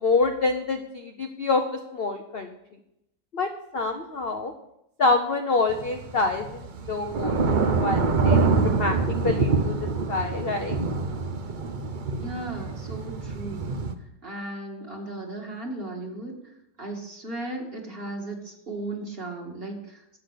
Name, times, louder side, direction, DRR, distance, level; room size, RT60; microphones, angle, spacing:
voice 1, 0.0-2.5 3.3-4.5 5.0-9.0 9.2-10.8, left 3 dB, 50° left, 5 dB, 0.7 m, -27 dB
Thunder / Rain, 5.7-13.9, right 4 dB, 55° right, 0.5 m, -25 dB
voice 2, 12.2-13.7 14.2-16.4 16.8-20.2, right 2 dB, 30° right, 0 dB, 2.3 m, -36 dB
12.0 x 8.1 x 6.6 m, 0.83 s
omnidirectional pair, 1.9 m